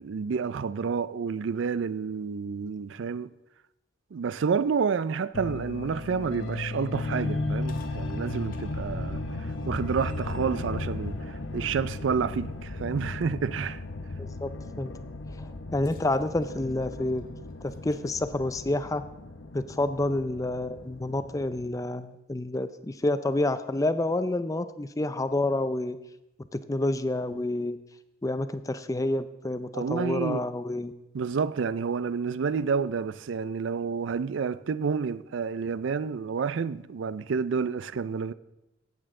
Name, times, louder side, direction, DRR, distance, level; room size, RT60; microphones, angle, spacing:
voice 1, 0.0-3.3 4.1-9.2 9.7-13.8 29.7-30.4 31.1-38.3, right 5 dB, 70° right, 0.4 m, -29 dB
sound 1, 5.3-21.7, left 2 dB, 90° left, 0.9 m, -35 dB
sound 2, 7.1-12.7 13.1-13.3 15.7-18.1 19.1-19.2 20.0-20.1, left 1 dB, 45° left, 1.2 m, -52 dB
voice 2, 14.2-14.5 14.8-14.9 15.4-17.2 17.6-19.0 19.5-26.0 26.5-27.8 28.2-30.9, left 2 dB, 15° left, 0.4 m, -29 dB
15.5 x 8.1 x 3.7 m
head